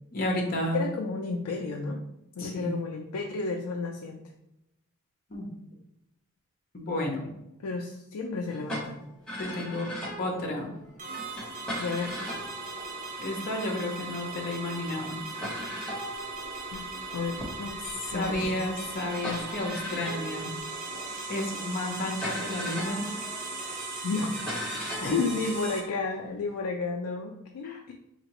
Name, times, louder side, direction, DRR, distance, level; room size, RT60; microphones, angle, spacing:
voice 1, 0.1-0.9 2.4-2.7 5.3-5.5 6.7-7.3 9.4-9.9 10.2-10.7 13.2-15.2 18.1-20.5 21.3-23.1 25.0-25.2 27.6-27.8, left 1 dB, 40° left, 0 dB, 0.8 m, -32 dB
voice 2, 0.7-2.0 2.4-4.2 7.6-9.0 11.8-12.1 16.7-16.9 17.1-17.8 18.1-18.6 24.0-24.3 25.1-27.9, left 4 dB, 85° left, 1 dB, 0.4 m, -32 dB
sound 1, 8.5-13.8 14.5-14.6 14.8-14.9 15.3-26.5, equal, 5° left, 1.0 m, -40 dB
sound 2, 11.0-25.8, right 3 dB, 35° right, 0.6 m, -38 dB
4.2 x 2.9 x 3.0 m, 0.86 s
head